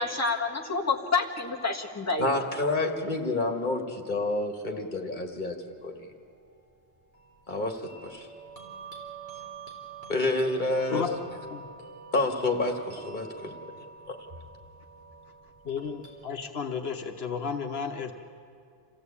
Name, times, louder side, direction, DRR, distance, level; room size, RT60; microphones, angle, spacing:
voice 1, 0.0-2.3, left 4 dB, 15° left, -1 dB, 1.6 m, -28 dB
voice 2, 2.2-5.6 5.8-6.1 7.5-8.3 10.1-11.1 12.1-13.5 14.1-14.2, left 2 dB, 50° left, 4 dB, 2.0 m, -29 dB
sound 1, 7.1-16.3, right 4 dB, 15° right, 3.8 m, -46 dB
voice 3, 15.6-18.1, left 6 dB, 70° left, 5 dB, 1.2 m, -32 dB
27.5 x 15.5 x 8.5 m, 2.4 s
omnidirectional pair, 1.1 m